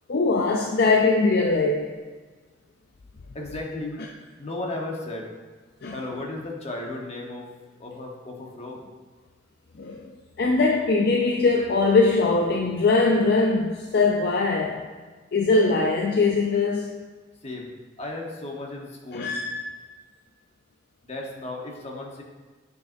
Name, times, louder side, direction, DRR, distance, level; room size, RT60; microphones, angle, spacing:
voice 1, 0.1-1.9 5.8-5.9 9.8-10.1 10.4-14.9 15.3-16.9 19.1-19.6, left 3 dB, 55° left, 1 dB, 0.4 m, -21 dB
voice 2, 3.3-3.9 4.4-5.3 5.9-7.5 7.8-8.8 17.4-17.7 18.0-19.3 21.0-22.2, left 2 dB, 35° left, -1 dB, 1.1 m, -34 dB
9.0 x 5.4 x 2.6 m, 1.4 s
head